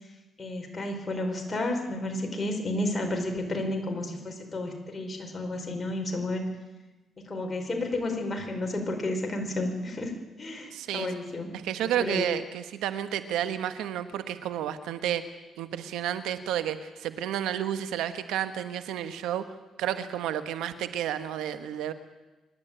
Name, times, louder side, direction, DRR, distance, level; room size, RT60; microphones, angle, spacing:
voice 1, 0.4-6.5 7.2-10.1 10.4-11.5 12.0-12.3, left 1 dB, 30° left, 3 dB, 5.3 m, -31 dB
voice 2, 10.7-11.1 11.5-15.2 15.6-19.5 19.8-21.9, right 10 dB, 90° right, 11 dB, 1.3 m, -31 dB
25.5 x 12.0 x 9.1 m, 1.1 s
cardioid pair, 90°, 0 cm